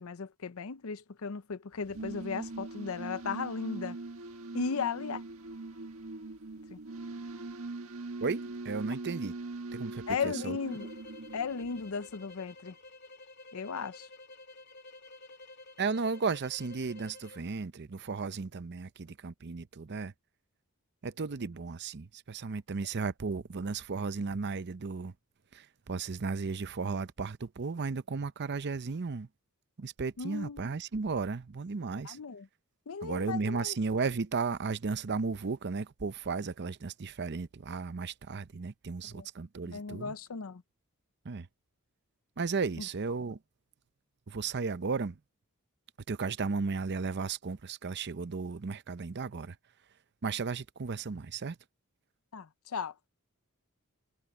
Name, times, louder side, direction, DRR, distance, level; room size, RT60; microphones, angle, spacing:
voice 1, 0.0-4.0 4.5-5.2 6.7-6.8 10.1-10.9 11.3-12.7 13.5-14.1 30.2-30.6 32.0-32.5 32.9-33.8 39.1-39.3 39.7-40.6 42.8-42.9 52.3-52.9, left 5 dB, 70° left, 0.6 m, -36 dB
sound 1, 1.7-12.2, right 3 dB, 65° right, 1.5 m, -42 dB
voice 2, 8.2-9.3 9.7-10.6 15.8-20.1 21.0-25.1 25.5-29.3 29.8-32.2 33.0-40.1 41.2-41.5 42.4-43.4 44.3-45.2 46.1-49.6 50.2-51.6, right 4 dB, 50° right, 0.6 m, -34 dB
sound 2, 10.7-17.5, left 2 dB, 50° left, 2.7 m, -51 dB
head